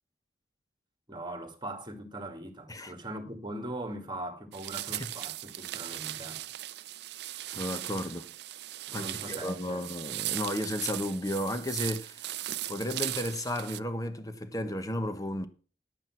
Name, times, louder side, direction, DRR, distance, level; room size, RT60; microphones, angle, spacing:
voice 1, 1.1-6.4 8.9-9.9, right 1 dB, 25° right, 2.2 m, -40 dB
sound 1, 4.5-13.8, right 14 dB, 65° right, 0.5 m, -38 dB
voice 2, 7.5-8.3 8.9-12.3 12.7-15.5, left 1 dB, 20° left, 1.2 m, -33 dB
11.0 x 8.8 x 5.9 m
head